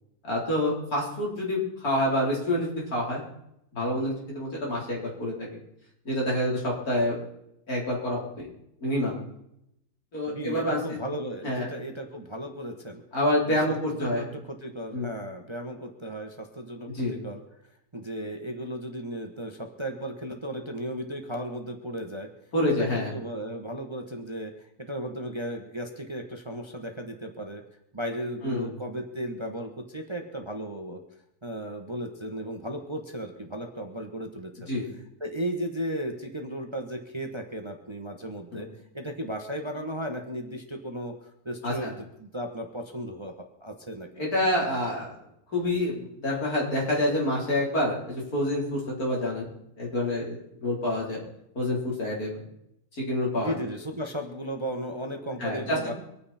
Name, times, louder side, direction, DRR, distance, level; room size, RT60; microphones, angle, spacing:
voice 1, 0.3-3.2 3.7-5.5 6.0-7.2 7.7-8.5 8.8-9.2 10.1-11.0 11.4-11.7 13.1-14.2 14.9-15.1 16.9-17.2 22.5-23.1 28.4-28.7 34.7-34.9 38.5-38.7 41.6-41.9 44.2-45.1 45.5-49.5 49.8-51.2 51.5-52.4 52.9-53.5 55.4-55.9, left 1 dB, 70° left, -3 dB, 4.5 m, -27 dB
voice 2, 10.3-13.0 13.4-13.6 13.9-17.4 17.9-22.3 22.7-27.6 27.9-31.0 31.4-34.5 35.2-38.7 38.9-41.1 41.4-44.1 53.4-55.9, equal, 20° right, 4 dB, 1.2 m, -35 dB
24.5 x 9.5 x 4.3 m, 0.79 s
omnidirectional pair, 1.7 m